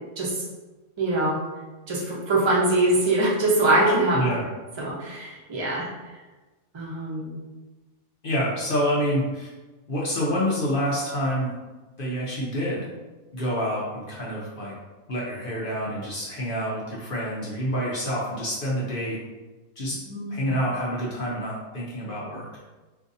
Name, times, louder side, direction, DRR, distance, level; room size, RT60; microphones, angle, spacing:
voice 1, 1.0-1.4 1.9-4.2 4.8-5.9 6.7-7.4 20.1-20.5, right 2 dB, 30° right, -5 dB, 0.5 m, -23 dB
voice 2, 4.1-4.5 8.2-9.5 9.9-11.5 12.0-12.9 13.3-14.7 15.1-19.2 19.8-20.0 20.3-22.5, equal, 55° left, -5 dB, 0.7 m, -27 dB
3.8 x 2.6 x 2.6 m, 1.2 s
omnidirectional pair, 1.4 m